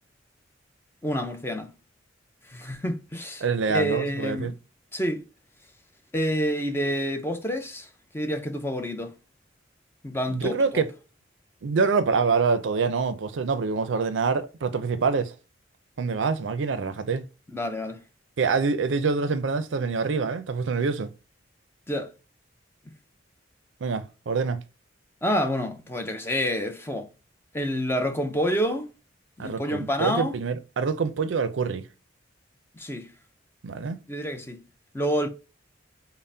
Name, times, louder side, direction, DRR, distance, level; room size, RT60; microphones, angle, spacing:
voice 1, 1.0-1.7 2.5-4.5 4.9-5.2 6.1-7.9 8.1-9.1 10.0-10.8 17.5-18.0 21.9-22.1 22.9-23.0 25.2-27.1 27.5-28.9 29.4-30.3 32.7-33.1 34.1-34.6 34.9-35.3, equal, 10° left, 0.5 m, -28 dB
voice 2, 3.4-4.5 10.3-10.9 11.6-15.3 16.0-17.2 18.4-21.1 23.8-24.6 29.4-31.9 33.6-34.0, right 4 dB, 70° right, 0.5 m, -26 dB
5.4 x 2.1 x 2.6 m
head